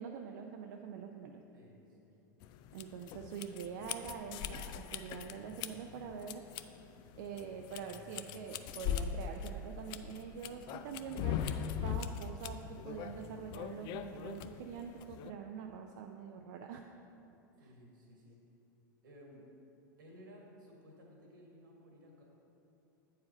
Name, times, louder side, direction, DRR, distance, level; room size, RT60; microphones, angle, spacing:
voice 1, 0.0-1.4 2.7-6.4 7.2-11.4 11.8-16.8 17.6-17.7, right 7 dB, 60° right, 3 dB, 0.4 m, -45 dB
voice 2, 1.5-2.2 17.6-18.4 19.0-19.5 20.0-22.2, equal, 75° right, -1 dB, 1.5 m, -57 dB
sound 1, 2.4-15.3, left 8 dB, 45° left, 0.3 m, -41 dB
8.2 x 4.8 x 4.3 m, 2.9 s
hypercardioid pair, 90°, 11 cm